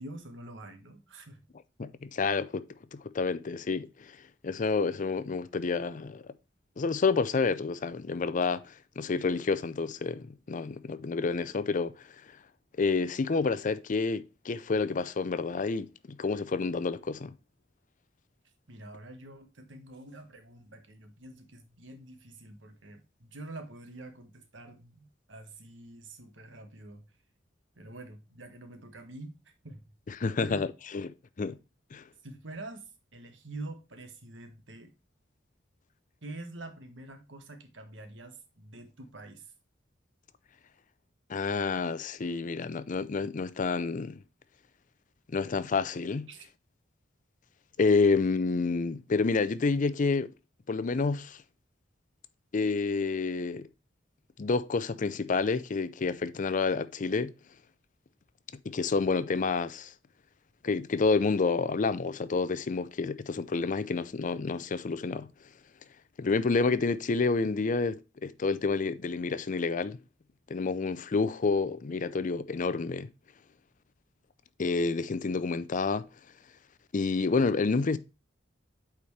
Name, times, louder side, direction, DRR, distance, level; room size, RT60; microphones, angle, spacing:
voice 1, 0.0-1.4 18.7-27.0 27.8-29.4 29.6-29.8 30.4-30.7 32.2-34.9 36.2-39.5 46.3-46.5, right 2 dB, 80° right, 1.5 m, -46 dB
voice 2, 1.8-4.2 4.4-6.2 6.8-12.4 12.8-17.3 30.1-30.7 30.9-31.1 31.4-31.6 31.9-32.1 41.3-44.2 45.3-46.3 47.8-50.3 50.7-51.4 52.5-53.7 54.4-57.4 58.6-59.9 60.6-65.3 66.2-70.0 70.5-73.1 74.6-76.1 76.9-78.0, left 4 dB, 45° left, 0.5 m, -29 dB
8.6 x 4.3 x 3.2 m
head